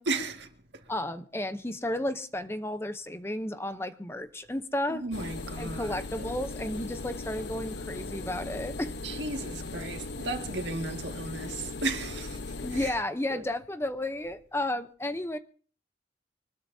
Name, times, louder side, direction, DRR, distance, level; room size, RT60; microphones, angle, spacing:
voice 1, 0.1-0.9 4.9-6.3 9.0-13.0 13.3-13.5, right 3 dB, 80° right, 2.0 m, -35 dB
voice 2, 0.9-5.0 5.6-8.9 12.6-15.4, left 1 dB, 15° left, 0.7 m, -33 dB
sound 1, 5.1-12.9, left 3 dB, 75° left, 1.0 m, -38 dB
24.5 x 20.0 x 2.8 m
head